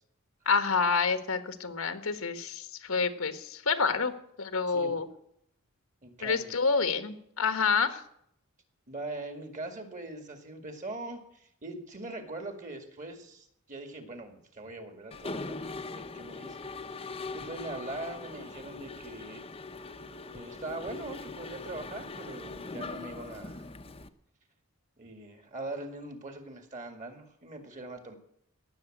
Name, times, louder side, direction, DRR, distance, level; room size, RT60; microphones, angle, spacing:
voice 1, 0.4-4.1 4.4-5.1 6.2-8.0, left 5 dB, 80° left, 9 dB, 1.4 m, -28 dB
voice 2, 4.7-5.0 6.0-6.6 8.9-16.6 16.9-19.4 20.3-23.6 25.0-28.2, right 2 dB, 35° right, 6 dB, 2.2 m, -42 dB
Mechanisms, 15.1-24.1, left 3 dB, 25° left, 0.8 m, -41 dB
17.5 x 7.1 x 9.0 m, 0.73 s
head